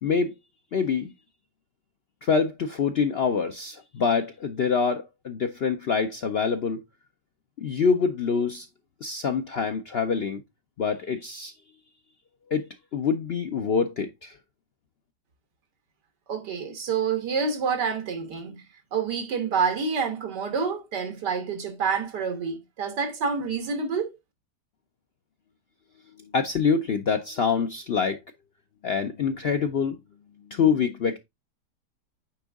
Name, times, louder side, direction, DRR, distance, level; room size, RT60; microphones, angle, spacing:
voice 1, 0.0-0.3 0.7-1.1 2.2-6.8 7.6-8.7 9.0-10.4 10.8-11.5 12.5-14.4 26.3-28.2 28.8-30.0 30.5-31.2, left 6 dB, 65° left, 0.6 m, -25 dB
voice 2, 16.3-18.6 18.9-24.1, right 5 dB, 90° right, 2.1 m, -28 dB
9.2 x 3.6 x 3.4 m
omnidirectional pair, 1.8 m